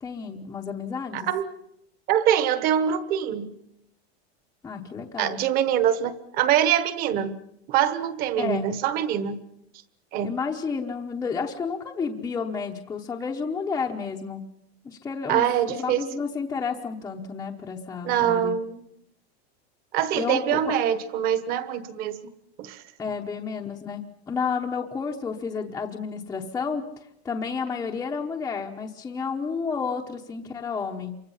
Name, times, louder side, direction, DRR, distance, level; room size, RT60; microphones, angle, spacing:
voice 1, 0.0-1.3 4.6-5.4 7.1-7.3 8.4-8.7 10.2-14.5 14.8-18.6 20.1-20.7 23.0-31.2, left 5 dB, 10° left, -1 dB, 0.9 m, -31 dB
voice 2, 1.1-1.5 2.1-3.5 5.2-7.3 7.7-9.4 10.1-10.3 15.3-16.0 18.0-18.8 19.9-22.2 22.6-22.8, right 10 dB, 25° right, 14 dB, 1.3 m, -24 dB
28.0 x 24.5 x 5.6 m, 0.77 s
supercardioid pair, 180°, 32 cm